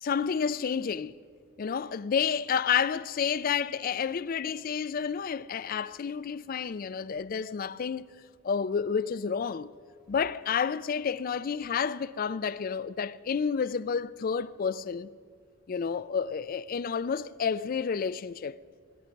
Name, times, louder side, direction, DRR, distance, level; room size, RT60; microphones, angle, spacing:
voice 1, 0.0-1.1 1.6-8.1 8.4-9.7 10.1-15.1 15.7-18.6, left 6 dB, 45° left, 0.3 m, -30 dB
26.0 x 10.5 x 5.3 m
head